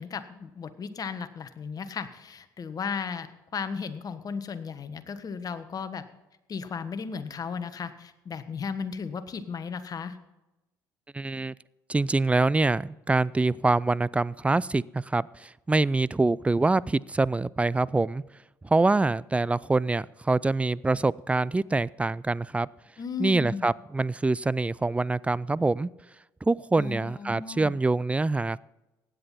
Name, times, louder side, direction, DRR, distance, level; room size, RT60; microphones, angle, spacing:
voice 1, 0.0-6.0 6.5-10.2 23.0-23.7 26.8-27.7, left 6 dB, 40° left, 11 dB, 1.3 m, -35 dB
voice 2, 11.1-11.5 11.9-18.2 18.6-22.7 23.2-25.9 26.4-28.6, right 3 dB, 15° right, 22 dB, 0.4 m, -25 dB
16.0 x 10.0 x 4.2 m, 0.98 s
hypercardioid pair, 60°, 9 cm